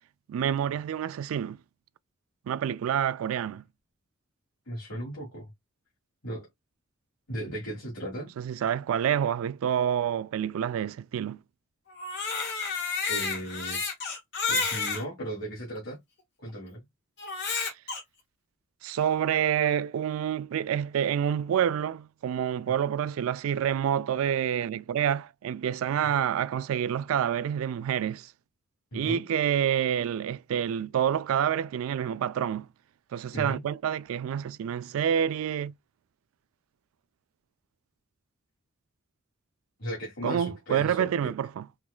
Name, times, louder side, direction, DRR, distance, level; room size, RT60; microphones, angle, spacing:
voice 1, 0.3-1.6 2.5-3.6 8.4-11.4 18.8-28.3 28.9-32.7 33.1-35.7 40.2-41.7, right 9 dB, 75° right, 0.3 m, -28 dB
voice 2, 4.7-5.5 6.2-6.4 7.3-8.3 13.1-13.8 14.5-16.0 16.4-16.8 28.9-29.2 33.3-33.6 39.8-41.3, right 1 dB, 75° left, 1.6 m, -36 dB
Crying sobbing, 11.9-15.0 15.8-15.9 17.2-18.0, left 4 dB, 55° left, 1.2 m, -30 dB
4.4 x 2.3 x 2.3 m
head